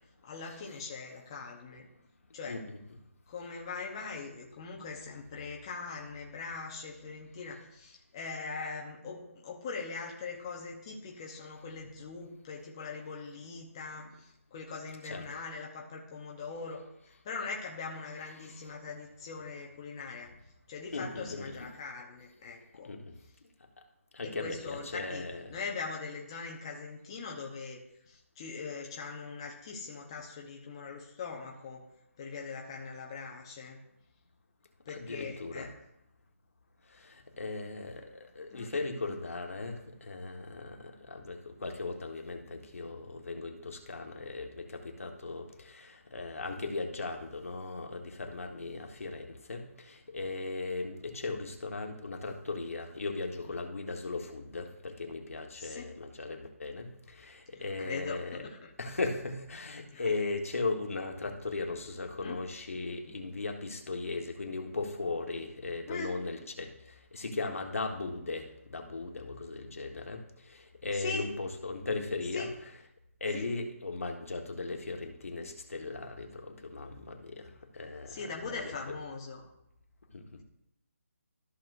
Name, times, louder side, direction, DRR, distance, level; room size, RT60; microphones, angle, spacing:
voice 1, 0.2-1.9 2.3-2.6 3.3-16.8 17.2-20.3 20.7-22.9 24.2-25.2 25.5-27.8 28.1-31.8 32.2-33.8 34.9-35.7 38.5-38.7 55.5-55.9 57.6-58.7 59.9-60.0 62.2-62.4 63.1-63.2 65.9-66.2 70.9-71.3 72.3-72.5 73.3-73.4 78.1-79.4, left 4 dB, 20° left, -2 dB, 0.9 m, -41 dB
voice 2, 2.4-2.8 15.0-15.2 18.4-18.6 20.9-21.7 22.8-23.1 24.1-25.5 34.9-35.7 37.0-58.4 58.8-66.7 67.1-70.2 70.5-72.5 73.2-78.8 80.1-80.4, left 3 dB, 70° left, 3 dB, 1.5 m, -37 dB
14.0 x 6.2 x 2.6 m, 0.81 s
hypercardioid pair, 170°, 8 cm